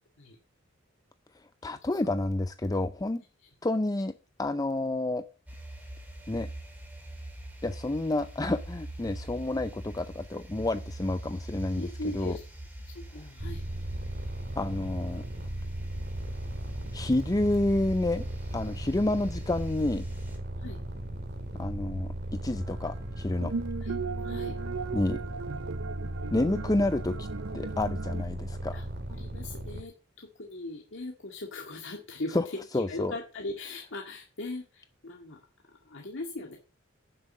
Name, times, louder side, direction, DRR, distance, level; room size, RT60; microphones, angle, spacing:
voice 1, 1.6-3.2 3.6-4.1 4.4-5.2 6.3-6.5 7.6-11.9 12.1-12.3 14.6-15.2 16.9-18.3 18.5-20.0 21.5-22.1 22.4-23.5 24.9-25.2 26.3-27.3 27.5-28.8 32.3-32.4 32.7-33.1, left 2 dB, 20° left, 11 dB, 0.5 m, -29 dB
sound 1, 5.5-20.4, right 1 dB, 10° right, 3.6 m, -42 dB
voice 2, 11.8-12.4 12.8-13.6 20.6-20.8 23.8-23.9 24.2-24.6 28.7-28.8 29.2-35.4 35.9-36.6, left 2 dB, 65° left, 1 dB, 2.0 m, -39 dB
sound 2, 13.4-29.8, right 1 dB, 55° right, 2.5 m, -37 dB
sound 3, 23.4-28.2, right 5 dB, 90° right, 0.6 m, -37 dB
10.0 x 7.5 x 7.3 m, 0.36 s
head